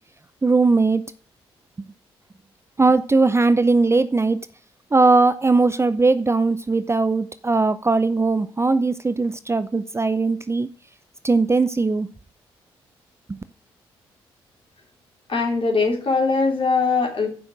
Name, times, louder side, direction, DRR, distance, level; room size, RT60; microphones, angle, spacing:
voice 1, 0.4-1.0 1.8-1.9 2.8-4.4 4.9-10.7 11.2-12.1 13.3-13.4, right 3 dB, 20° right, 0.6 m, -19 dB
voice 2, 15.3-17.3, left 4 dB, 45° left, 3.0 m, -21 dB
6.9 x 5.7 x 7.4 m
hypercardioid pair, 40°, 12 cm